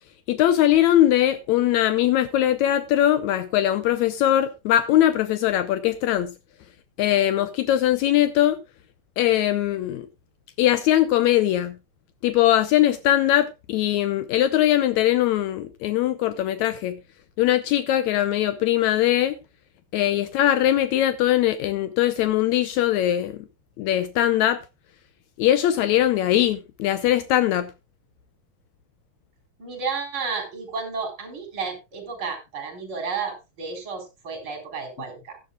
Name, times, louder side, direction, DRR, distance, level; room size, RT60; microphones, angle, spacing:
voice 1, 0.3-6.3 7.0-8.6 9.2-10.1 10.6-11.7 12.2-17.0 17.4-19.4 19.9-23.4 23.8-24.6 25.4-27.7, left 12 dB, 90° left, 1.6 m, -21 dB
voice 2, 29.6-35.4, right 5 dB, 35° right, 4.3 m, -32 dB
16.0 x 11.5 x 2.4 m
omnidirectional pair, 4.1 m